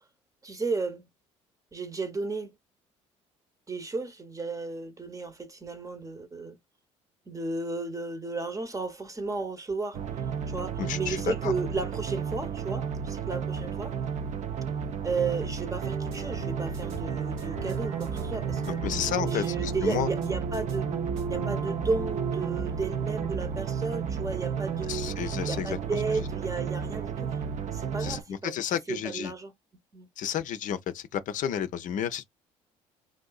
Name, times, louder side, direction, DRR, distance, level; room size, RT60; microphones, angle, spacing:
voice 1, 0.4-1.1 1.7-2.5 3.7-6.6 7.3-10.0 10.5-14.0 15.0-18.8 19.3-20.9 21.3-27.4 27.7-29.5 29.9-30.1, right 3 dB, 20° right, 0.9 m, -34 dB
sound 1, 9.9-28.2, right 7 dB, 50° right, 0.5 m, -32 dB
voice 2, 10.8-11.5 18.8-20.1 24.9-25.8 28.0-29.3 30.2-32.2, left 9 dB, 55° left, 0.5 m, -31 dB
sound 2, 15.8-23.3, right 3 dB, 80° right, 1.5 m, -38 dB
3.6 x 2.6 x 2.3 m
hypercardioid pair, 60°, 15 cm